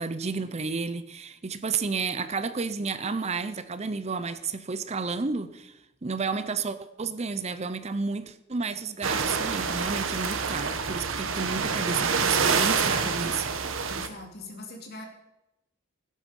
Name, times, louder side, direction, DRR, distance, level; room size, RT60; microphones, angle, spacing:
voice 1, 0.0-5.7 6.0-13.5, right 4 dB, 30° right, 12 dB, 0.6 m, -31 dB
sound 1, 9.0-14.1, right 5 dB, 75° right, 1.3 m, -27 dB
voice 2, 13.9-15.1, left 2 dB, 50° left, 2 dB, 3.2 m, -41 dB
17.5 x 10.0 x 5.4 m, 0.93 s
head